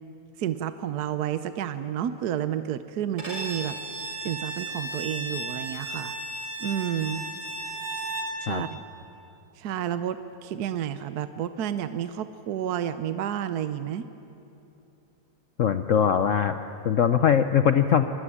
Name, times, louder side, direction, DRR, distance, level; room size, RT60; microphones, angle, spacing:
voice 1, 0.4-3.8 4.2-6.1 6.6-7.3 8.4-8.8 9.6-14.1, right 10 dB, 70° right, 11 dB, 1.3 m, -30 dB
Bowed string instrument, 3.2-8.4, right 2 dB, 45° right, 6.3 m, -34 dB
voice 2, 15.6-16.6 16.8-18.0, left 8 dB, 60° left, 9 dB, 1.0 m, -21 dB
25.5 x 21.5 x 9.9 m, 3.0 s
omnidirectional pair, 1.8 m